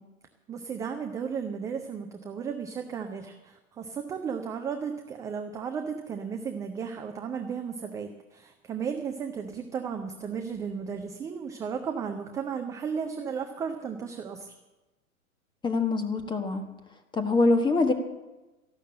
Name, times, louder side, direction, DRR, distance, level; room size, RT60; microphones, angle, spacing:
voice 1, 0.5-14.5, right 6 dB, 10° right, 5 dB, 0.5 m, -34 dB
voice 2, 15.6-16.6 17.1-17.9, left 3 dB, 10° left, 6 dB, 1.4 m, -24 dB
13.5 x 11.5 x 7.6 m, 1.1 s
figure-of-eight pair, 105°, 43 cm